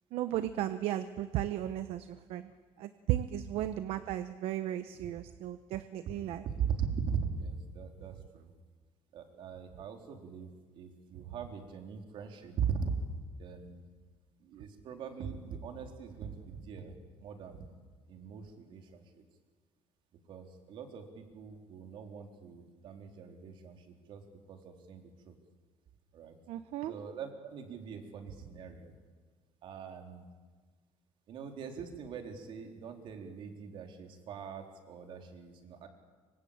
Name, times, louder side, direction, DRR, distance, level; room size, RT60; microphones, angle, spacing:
voice 1, 0.1-2.5 2.8-6.4 26.5-26.9, right 12 dB, 70° right, 10 dB, 1.1 m, -35 dB
voice 2, 6.2-8.5 9.1-12.9 13.4-13.9 14.4-16.9 17.2-17.7 18.1-19.2 20.3-24.2 24.5-25.4 26.1-26.4 26.8-28.9 29.6-30.3 31.3-35.9, right 6 dB, 55° right, 4 dB, 3.9 m, -40 dB
25.5 x 25.0 x 8.9 m, 1.4 s
cardioid pair, 175°, 10 cm